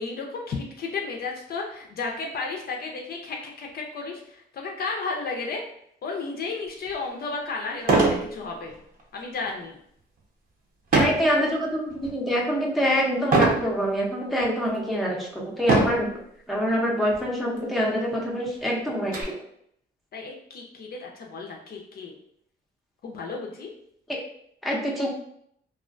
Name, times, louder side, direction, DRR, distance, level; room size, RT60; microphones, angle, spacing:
voice 1, 0.0-5.6 6.0-8.0 8.3-8.7 9.1-9.8 20.1-22.1 23.0-23.7, left 4 dB, 50° left, 0 dB, 0.5 m, -33 dB
sound 1, 6.9-7.0 7.8-8.3 8.7-9.0 10.9-11.3 11.9-12.3 13.3-13.7 14.4-14.5 15.6-16.1 17.1-17.2 17.6-17.7 18.1-19.2, right 3 dB, 45° right, 0.7 m, -22 dB
voice 2, 10.9-16.1 16.5-19.3 24.1-24.2 24.6-25.1, equal, ahead, -3 dB, 0.5 m, -25 dB
2.3 x 2.1 x 2.5 m, 0.71 s
cardioid pair, 90°, 20 cm